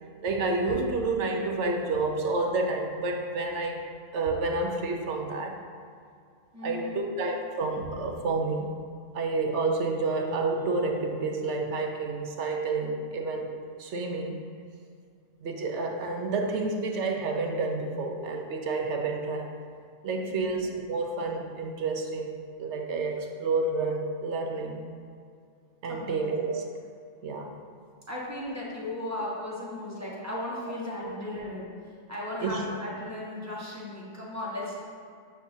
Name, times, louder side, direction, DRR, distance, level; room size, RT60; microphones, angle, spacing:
voice 1, 0.2-5.6 6.6-8.7 9.1-13.5 13.8-14.4 15.4-19.5 20.0-24.8 25.8-26.6 27.2-27.5 32.4-32.6, right 3 dB, 65° right, 2 dB, 0.9 m, -29 dB
voice 2, 6.5-7.1 20.2-20.6 25.9-26.3 28.1-31.7 32.1-34.8, left 1 dB, 15° right, -6 dB, 1.3 m, -36 dB
9.0 x 6.3 x 2.7 m, 2.3 s
omnidirectional pair, 1.4 m